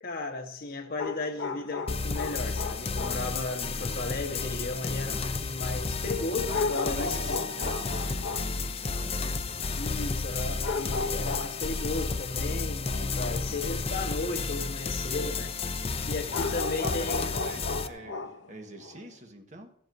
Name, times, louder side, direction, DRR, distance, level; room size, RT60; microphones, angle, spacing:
voice 1, 0.0-7.4 9.8-15.5 16.0-17.5, left 3 dB, 55° left, 1.3 m, -35 dB
sound 1, 1.0-3.3 6.5-8.6 10.6-11.7 16.3-19.1, left 4 dB, 80° left, 0.7 m, -34 dB
sound 2, 1.9-17.9, left 4 dB, 35° left, 0.5 m, -32 dB
voice 2, 6.2-9.4 13.3-13.6 16.3-19.7, right 2 dB, 40° right, 1.3 m, -45 dB
14.5 x 12.0 x 2.6 m
head